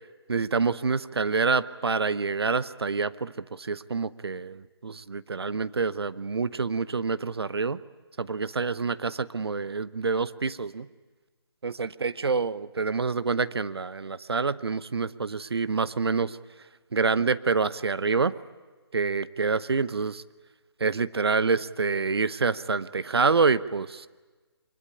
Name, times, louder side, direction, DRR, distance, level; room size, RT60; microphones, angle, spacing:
voice 1, 0.3-7.8 8.2-10.9 11.6-16.4 16.9-18.3 18.9-20.2 20.8-24.1, right 4 dB, 65° right, 16 dB, 0.8 m, -27 dB
24.0 x 20.5 x 9.7 m, 1.3 s
figure-of-eight pair, 155°, 14 cm